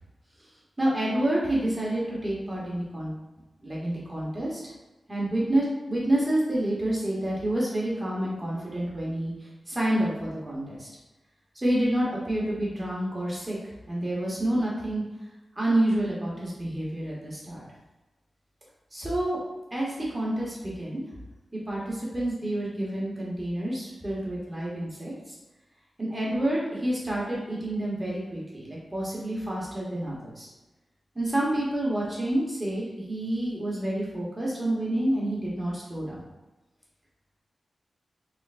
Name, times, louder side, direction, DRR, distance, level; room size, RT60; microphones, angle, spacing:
voice 1, 0.8-3.1 3.6-4.6 5.1-10.9 11.5-13.6 13.9-15.0 15.6-17.6 18.9-19.4 19.7-21.0 21.7-25.3 26.0-30.5 31.1-36.2, right 1 dB, 20° right, -5 dB, 1.1 m, -28 dB
3.8 x 3.1 x 2.5 m, 1.1 s
wide cardioid pair, 90°, 0 cm